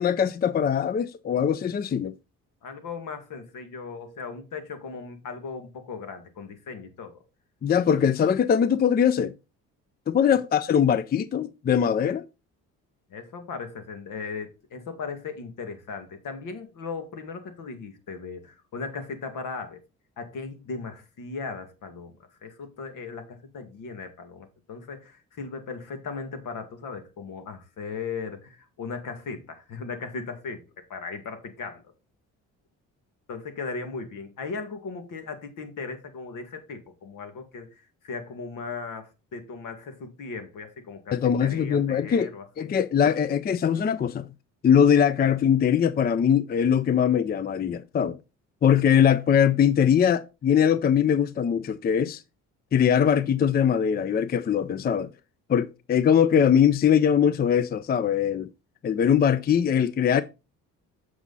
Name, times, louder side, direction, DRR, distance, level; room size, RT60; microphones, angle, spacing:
voice 1, 0.0-2.1 7.6-9.3 10.1-12.2 41.1-42.3 42.6-44.3 44.6-48.2 48.6-52.2 52.7-55.1 55.5-58.5 58.8-60.2, left 8 dB, 30° left, 0.4 m, -21 dB
voice 2, 2.6-7.2 13.1-19.8 20.2-22.1 22.4-30.6 30.9-31.8 33.3-42.7, left 4 dB, 70° left, 2.1 m, -37 dB
8.0 x 6.1 x 4.1 m
cardioid pair, 90°, 33 cm